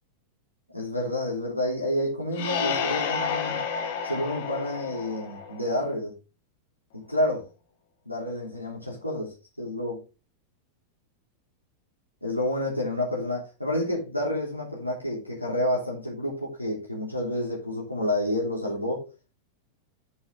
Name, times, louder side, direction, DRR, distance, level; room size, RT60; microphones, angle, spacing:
voice 1, 0.7-3.6 4.0-6.1 6.9-7.5 8.0-10.0 12.2-19.1, left 1 dB, 90° left, 3.4 m, -29 dB
sound 1, 2.3-5.9, left 6 dB, 55° left, 2.3 m, -30 dB
8.4 x 7.9 x 3.6 m
figure-of-eight pair, 90°, 0 cm